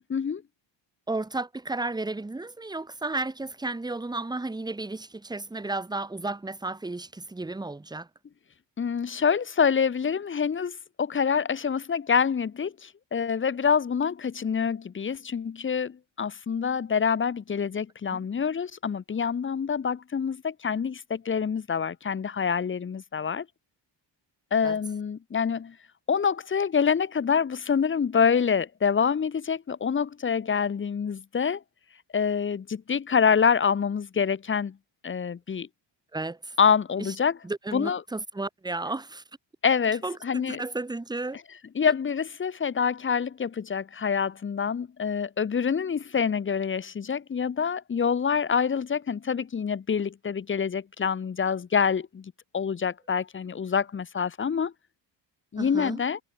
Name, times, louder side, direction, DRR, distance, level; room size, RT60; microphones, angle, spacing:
voice 1, 0.1-0.4 8.8-23.5 24.5-25.7 26.1-31.6 32.1-34.8 35.0-35.7 36.6-37.4 37.7-38.0 39.6-40.6 41.8-54.7 55.5-56.2, left 6 dB, 25° left, 0.9 m, -26 dB
voice 2, 1.1-8.1 18.1-18.3 24.6-24.8 36.1-36.6 37.0-37.1 37.4-39.2 40.0-41.4 41.8-41.9 55.6-56.0, right 2 dB, 10° right, 1.3 m, -33 dB
cardioid pair, 140°, 46 cm